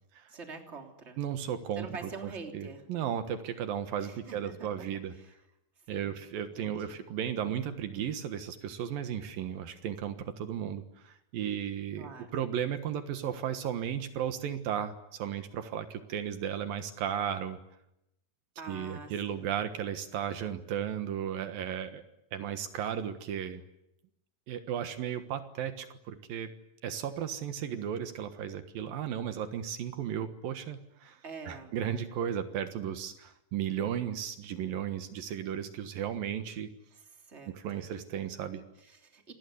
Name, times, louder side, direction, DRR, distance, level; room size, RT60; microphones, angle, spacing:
voice 1, 0.3-1.2 1.8-2.8 4.0-4.9 5.2-5.3 5.9-6.2 6.6-7.0 12.0-12.3 18.6-19.6 31.2-31.7 37.1-37.8 38.8-39.3, right 4 dB, 20° right, 4 dB, 3.3 m, -45 dB
voice 2, 1.2-5.1 5.9-17.6 18.7-22.0 22.3-23.6 24.5-26.5 26.8-36.7 37.5-38.6, right 9 dB, 75° right, 9 dB, 3.1 m, -35 dB
27.0 x 20.0 x 9.6 m, 0.83 s
omnidirectional pair, 4.2 m